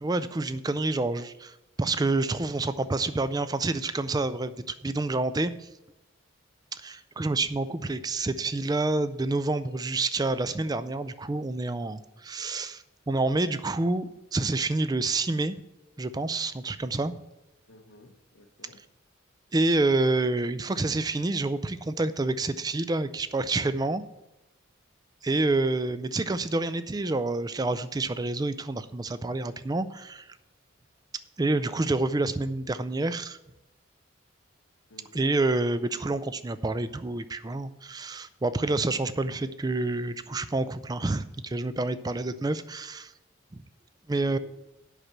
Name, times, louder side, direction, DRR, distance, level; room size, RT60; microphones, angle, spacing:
voice 1, 0.0-5.7 6.7-15.6 16.0-17.2 19.5-24.0 25.2-30.3 31.4-33.4 35.1-43.1 43.5-43.6 44.1-44.4, right 2 dB, 20° right, 13 dB, 0.4 m, -28 dB
voice 2, 17.7-18.8 34.9-35.4 44.2-44.4, left 2 dB, 75° left, 4 dB, 0.9 m, -52 dB
8.1 x 5.8 x 7.4 m, 0.94 s
head